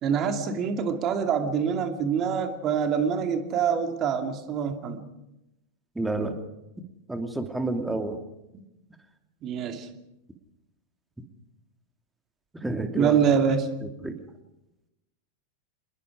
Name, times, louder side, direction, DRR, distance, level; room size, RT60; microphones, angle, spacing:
voice 1, 0.0-5.0 9.4-9.9 12.9-13.7, right 7 dB, 30° right, 6 dB, 2.4 m, -25 dB
voice 2, 5.9-6.3 7.1-8.2 12.5-13.2 13.8-14.2, right 2 dB, 5° right, 5 dB, 2.6 m, -29 dB
27.5 x 21.0 x 5.0 m, 0.91 s
figure-of-eight pair, 90°, 0 cm